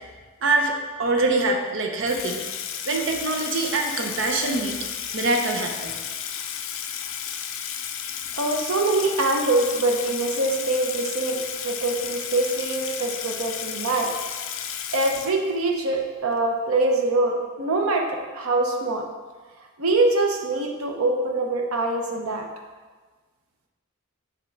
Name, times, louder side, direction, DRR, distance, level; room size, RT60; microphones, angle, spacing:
voice 1, 0.4-2.4 2.8-4.8 5.1-6.0, right 2 dB, 60° right, 2 dB, 0.7 m, -24 dB
Water tap faucet / Sink (filling or washing), 2.1-15.8, left 8 dB, 65° left, 0.5 m, -33 dB
voice 2, 8.4-11.4 11.6-14.1 14.9-19.0 19.8-22.4, right 2 dB, 90° right, 2 dB, 0.9 m, -24 dB
5.9 x 3.7 x 5.8 m, 1.4 s
head